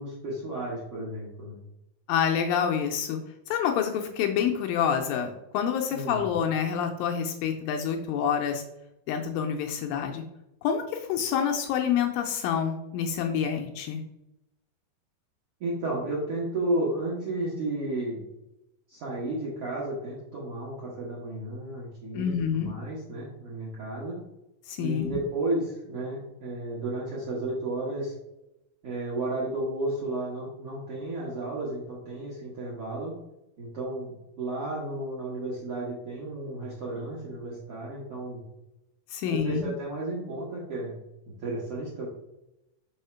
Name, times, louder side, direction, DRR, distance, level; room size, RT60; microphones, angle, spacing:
voice 1, 0.0-1.6 5.9-6.2 15.6-18.2 18.9-24.2 24.8-28.1 28.8-33.1 33.6-38.4 39.3-40.9 41.3-42.1, right 2 dB, 60° right, -6 dB, 1.5 m, -33 dB
voice 2, 2.1-3.2 3.5-8.6 9.1-10.2 10.6-14.0 22.1-22.7 24.7-25.2 39.1-39.7, left 8 dB, 80° left, 4 dB, 2.2 m, -27 dB
5.6 x 3.6 x 5.6 m, 0.88 s
omnidirectional pair, 4.4 m